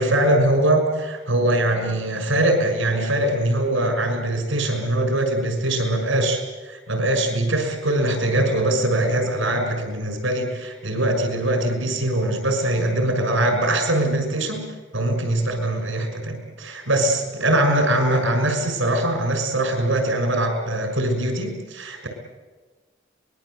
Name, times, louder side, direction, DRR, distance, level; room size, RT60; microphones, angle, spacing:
voice 1, 0.0-14.6 14.9-22.1, right 1 dB, 85° right, 6 dB, 6.3 m, -22 dB
24.5 x 22.0 x 8.1 m, 1.3 s
head